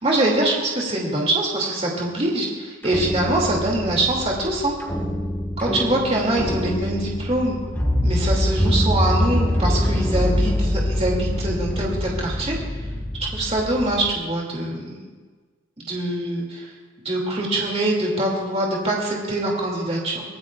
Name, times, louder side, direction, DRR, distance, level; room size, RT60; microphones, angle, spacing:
voice 1, 0.0-4.7 5.6-7.6 8.0-12.6 13.2-15.0 15.8-16.7 17.0-20.2, right 1 dB, 30° right, -2 dB, 2.5 m, -23 dB
sound 1, 2.8-14.1, left 1 dB, 10° left, 1.5 m, -24 dB
24.5 x 18.0 x 2.4 m, 1.4 s
head